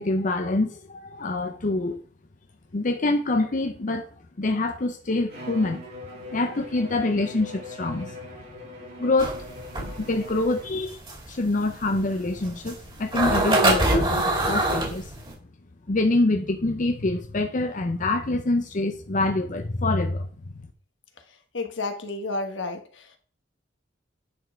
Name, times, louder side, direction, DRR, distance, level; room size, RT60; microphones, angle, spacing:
voice 1, 0.0-2.0 2.7-4.1 4.4-5.8 6.1-8.2 9.0-9.5 9.8-11.0 11.3-15.1 15.9-20.3, left 2 dB, 45° left, 6 dB, 0.7 m, -25 dB
Bowed string instrument, 5.3-10.9, left 2 dB, 60° right, 4.2 m, -41 dB
sound 1, 9.2-15.3, right 1 dB, 25° right, 2.7 m, -24 dB
voice 2, 21.5-23.2, left 3 dB, 75° left, 6 dB, 1.4 m, -31 dB
9.5 x 4.5 x 4.5 m, 0.42 s
head